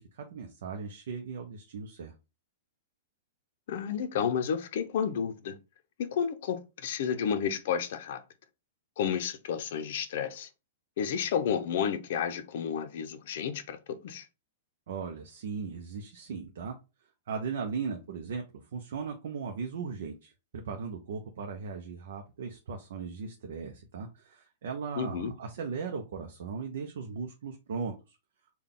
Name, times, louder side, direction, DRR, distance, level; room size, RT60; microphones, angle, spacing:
voice 1, 0.0-2.1 14.9-16.8 17.3-28.2, right 5 dB, 70° right, 0.6 m, -38 dB
voice 2, 3.7-5.6 6.0-8.2 9.0-10.5 11.0-14.3 25.0-25.3, left 7 dB, 60° left, 0.6 m, -31 dB
3.8 x 2.3 x 3.6 m
hypercardioid pair, 155°, 0 cm